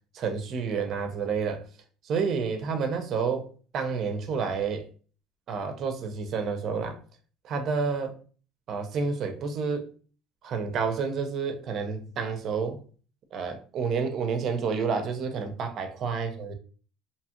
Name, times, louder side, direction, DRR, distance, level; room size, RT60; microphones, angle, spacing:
voice 1, 0.1-1.6 2.0-3.5 3.7-4.9 5.5-7.0 7.4-8.2 8.7-9.9 10.4-12.8 13.3-16.5, right 5 dB, 45° right, 0.5 m, -29 dB
2.8 x 2.3 x 2.8 m
cardioid pair, 135°, 0 cm